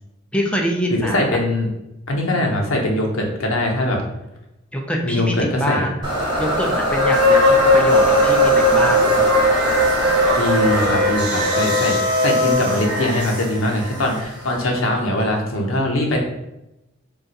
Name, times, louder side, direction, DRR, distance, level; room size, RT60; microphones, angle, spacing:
voice 1, 0.3-1.2 4.7-5.9 6.4-9.6, equal, 5° left, 0 dB, 0.4 m, -25 dB
voice 2, 1.0-1.7 2.1-4.0 5.0-5.8 10.4-16.2, left 1 dB, 80° left, 1 dB, 0.7 m, -21 dB
sound 1, 6.0-15.0, equal, 20° right, 1.1 m, -24 dB
sound 2, 6.9-12.9, left 1 dB, 90° right, 0.8 m, -18 dB
sound 3, 8.7-13.5, right 1 dB, 40° right, 0.5 m, -26 dB
2.5 x 2.3 x 4.0 m, 0.91 s
head